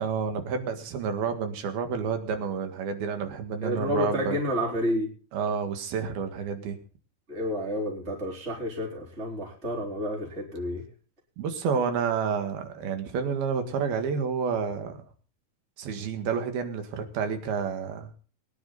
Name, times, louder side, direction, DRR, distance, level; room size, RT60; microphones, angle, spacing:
voice 1, 0.0-4.4 5.3-6.8 11.4-15.0 15.8-18.1, right 6 dB, 85° right, 7 dB, 3.7 m, -29 dB
voice 2, 3.6-5.1 7.3-10.8, equal, 15° right, -2 dB, 4.1 m, -30 dB
22.5 x 10.0 x 4.0 m, 0.39 s
omnidirectional pair, 4.2 m